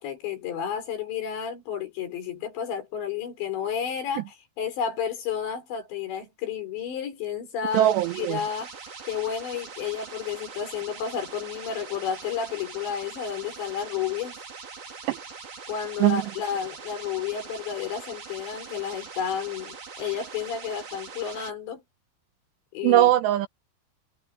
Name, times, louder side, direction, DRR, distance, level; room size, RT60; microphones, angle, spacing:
voice 1, 0.0-8.7 9.0-14.4 15.7-21.8 22.7-23.1, left 8 dB, 65° left, 7.0 m, -31 dB
sound 1, 7.7-21.5, right 5 dB, 50° right, 6.2 m, -42 dB
voice 2, 7.7-8.4 15.1-15.2 16.0-16.2 22.8-23.5, right 14 dB, 85° right, 2.6 m, -20 dB
omnidirectional pair, 5.5 m